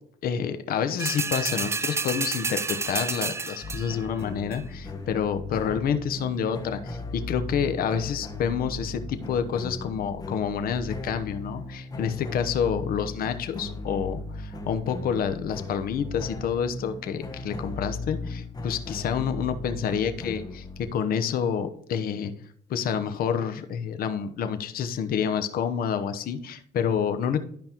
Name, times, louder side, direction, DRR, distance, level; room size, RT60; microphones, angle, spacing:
voice 1, 0.2-22.3 22.7-27.4, left 7 dB, 60° left, 9 dB, 1.0 m, -28 dB
sound 1, 1.0-4.1 4.5-4.6, right 4 dB, 15° right, 0.4 m, -30 dB
sound 2, 3.6-20.9, left 2 dB, 25° left, 1.3 m, -37 dB
12.0 x 5.3 x 3.0 m, 0.63 s
cardioid pair, 110°, 17 cm